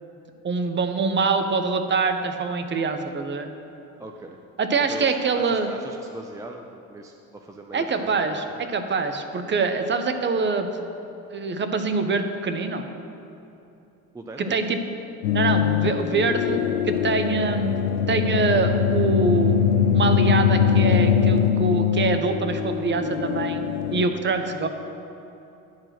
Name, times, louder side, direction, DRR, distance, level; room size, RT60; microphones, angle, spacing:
voice 1, 0.4-3.5 4.6-5.7 7.7-10.7 11.3-12.8 14.4-14.8 15.3-16.6 16.8-17.7 18.1-19.6 19.9-23.6 23.9-24.7, right 4 dB, 25° right, 7 dB, 0.8 m, -24 dB
voice 2, 4.0-4.4 4.9-8.6 14.1-14.6 15.5-15.6, right 2 dB, 10° right, 3 dB, 0.3 m, -40 dB
sound 1, 15.2-24.1, left 7 dB, 85° left, 0.5 m, -22 dB
10.5 x 4.5 x 5.9 m, 2.8 s
hypercardioid pair, 70°, 45 cm